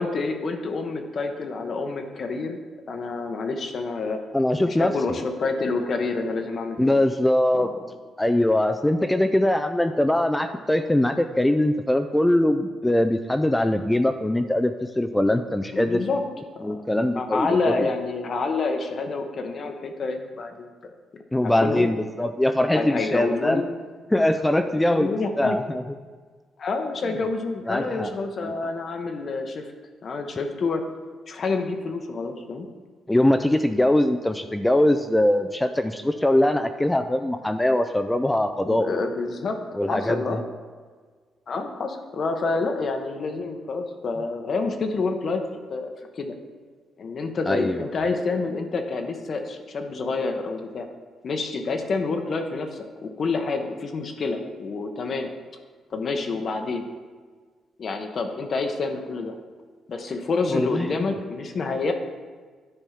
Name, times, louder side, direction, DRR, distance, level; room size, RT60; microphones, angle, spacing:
voice 1, 0.0-2.6 2.9-4.2 4.6-7.0 7.5-7.9 9.0-9.2 15.7-16.2 16.5-16.8 17.1-21.9 22.7-23.7 24.6-25.6 26.6-29.7 30.0-30.8 31.3-32.7 38.6-39.6 39.9-40.4 41.5-45.4 45.7-45.9 46.2-46.3 47.0-50.9 51.2-55.3 55.9-56.8 57.8-59.3 59.9-61.9, left 3 dB, 50° left, 5 dB, 0.8 m, -28 dB
voice 2, 4.3-4.9 6.8-7.7 8.2-16.0 16.6-17.9 21.3-23.6 24.1-25.1 25.4-25.8 27.7-28.1 28.4-28.5 33.1-39.0 39.7-40.4 47.5-47.9 60.5-61.1, left 1 dB, 10° left, 7 dB, 0.3 m, -22 dB
10.0 x 3.5 x 5.7 m, 1.5 s
cardioid pair, 90°, 0 cm